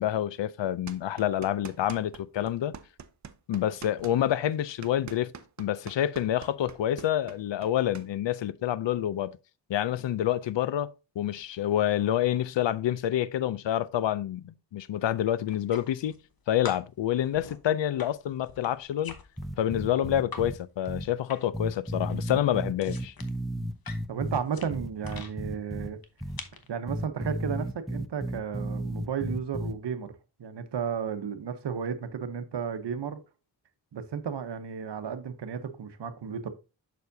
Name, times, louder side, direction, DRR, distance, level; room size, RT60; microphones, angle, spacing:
voice 1, 0.0-2.7 3.5-5.3 5.6-9.4 9.7-16.1 16.5-19.1 19.6-23.1, left 11 dB, 85° left, 0.5 m, -28 dB
sound 1, 0.9-2.2 2.5-8.1, right 6 dB, 40° right, 0.6 m, -45 dB
sound 2, 15.4-16.3 16.6-20.5 20.8-21.7 21.9-25.3 26.0-26.7, left 5 dB, 55° left, 1.0 m, -45 dB
sound 3, 19.4-20.6 20.9-21.1 21.5-24.4 24.7-25.9 26.2-26.4 26.9-29.7, equal, ahead, 0.6 m, -33 dB
voice 2, 24.1-26.0 26.7-30.1 30.4-33.2 33.9-36.5, right 7 dB, 70° right, 0.9 m, -33 dB
6.8 x 6.2 x 2.7 m
wide cardioid pair, 90°, 43 cm